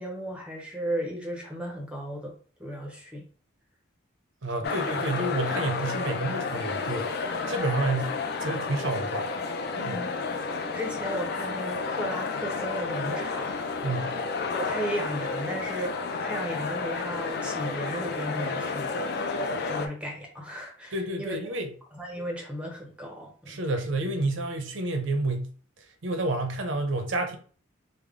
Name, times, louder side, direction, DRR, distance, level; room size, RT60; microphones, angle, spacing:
voice 1, 0.0-2.3 2.6-3.2 4.6-4.7 9.7-10.1 10.7-13.5 14.5-19.0 19.5-21.3 21.9-23.6, equal, 5° right, 0.5 m, -35 dB
voice 2, 4.4-9.3 9.8-10.0 13.8-14.2 20.9-21.7 23.5-25.5 26.0-27.4, right 2 dB, 70° right, 0.6 m, -29 dB
sound 1, 4.6-19.9, left 4 dB, 50° left, 0.4 m, -31 dB
3.4 x 2.0 x 3.5 m
head